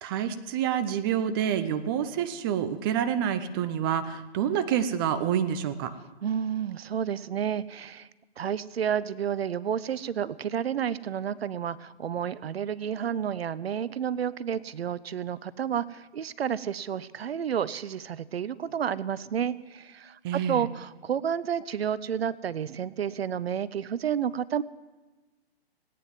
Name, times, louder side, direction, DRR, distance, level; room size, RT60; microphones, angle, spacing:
voice 1, 0.0-5.9 20.2-20.6, right 9 dB, 20° right, 11 dB, 0.6 m, -28 dB
voice 2, 6.2-8.1 8.4-24.6, right 8 dB, 70° right, 18 dB, 0.6 m, -30 dB
18.0 x 9.4 x 7.4 m, 1.2 s
figure-of-eight pair, 135°, 32 cm